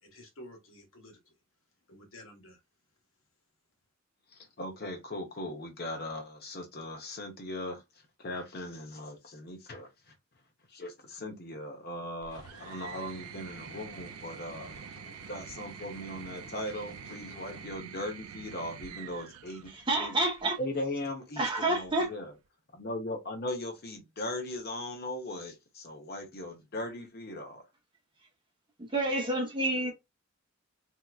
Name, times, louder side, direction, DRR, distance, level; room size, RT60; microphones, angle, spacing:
voice 1, 0.0-1.4 1.9-2.6, left 1 dB, 65° left, 1.3 m, -51 dB
voice 2, 4.3-7.8 8.2-9.9 10.7-14.7 15.3-19.7 20.0-20.1 20.6-22.3 22.7-27.6, left 1 dB, 45° left, 0.9 m, -38 dB
sound 1, 12.2-20.6 21.8-22.5, right 8 dB, 80° right, 0.4 m, -47 dB
sound 2, 12.3-17.7, left 4 dB, 90° left, 1.3 m, -54 dB
voice 3, 19.7-20.6 21.4-22.1 28.8-29.9, right 2 dB, 20° right, 0.9 m, -29 dB
3.5 x 2.9 x 2.4 m
head